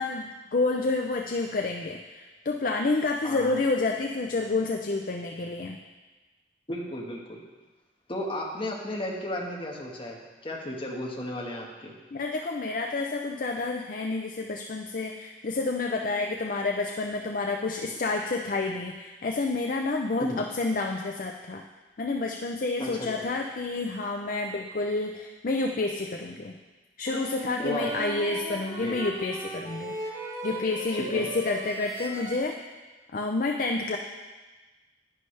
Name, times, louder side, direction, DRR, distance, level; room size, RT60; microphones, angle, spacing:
voice 1, 0.0-5.8 12.1-21.6 22.0-26.5 27.0-32.6 33.1-34.0, left 3 dB, 50° left, 2 dB, 0.5 m, -29 dB
voice 2, 6.7-7.4 8.1-11.9 20.2-20.4 22.8-23.3 27.6-27.9 28.8-29.0 30.9-31.3, left 1 dB, 30° left, -2 dB, 1.5 m, -34 dB
sound 1, 27.1-32.4, right 2 dB, 20° right, 1.1 m, -37 dB
11.0 x 9.8 x 3.3 m, 1.2 s
head